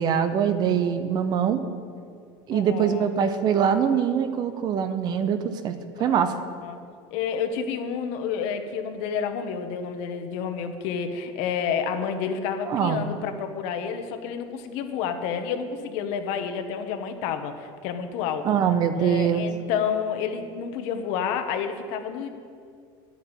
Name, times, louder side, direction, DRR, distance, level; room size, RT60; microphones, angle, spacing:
voice 1, 0.0-1.6 2.5-5.7 6.0-6.3 12.7-13.1 18.4-19.5, right 8 dB, 35° right, 10 dB, 0.8 m, -23 dB
voice 2, 2.5-3.0 6.0-6.8 7.1-18.6 19.0-22.3, left 7 dB, 60° left, 7 dB, 1.3 m, -30 dB
11.0 x 8.4 x 9.2 m, 2.2 s
cardioid pair, 155°, 12 cm